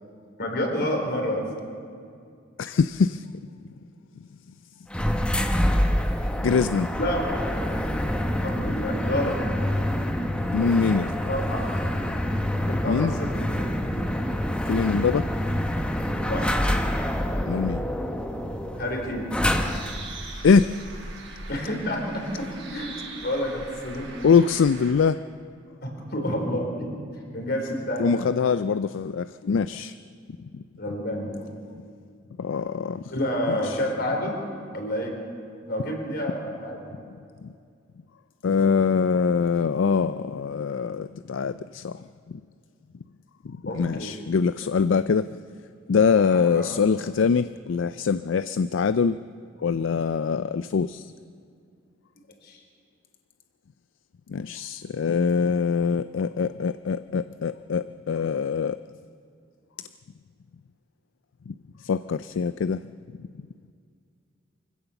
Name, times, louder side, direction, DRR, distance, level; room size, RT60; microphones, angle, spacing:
voice 1, 0.4-1.4 7.0-7.2 8.4-9.4 11.3-11.6 12.7-13.7 16.2-16.5 18.7-19.3 21.5-22.9 23.2-24.1 25.8-26.9 27.3-28.2 30.8-31.5 33.1-34.4 34.7-35.2 35.7-36.9 43.7-44.2 46.3-46.7 52.4-52.6, equal, 55° left, 2 dB, 4.0 m, -29 dB
voice 2, 2.6-3.3 6.4-6.9 10.5-11.1 12.9-13.1 14.7-15.3 17.5-17.8 20.4-20.7 24.2-25.2 28.0-29.9 32.4-33.0 33.5-33.8 38.4-42.4 43.4-45.3 45.9-49.2 49.6-51.1 54.3-58.8 61.5-61.6 61.8-62.8, left 5 dB, 75° left, 13 dB, 0.4 m, -23 dB
sound 1, 4.9-20.1, equal, 5° left, 1.1 m, -26 dB
Bird, 19.5-24.9, right 2 dB, 75° right, 6.4 m, -40 dB
24.0 x 16.0 x 7.1 m, 2.3 s
head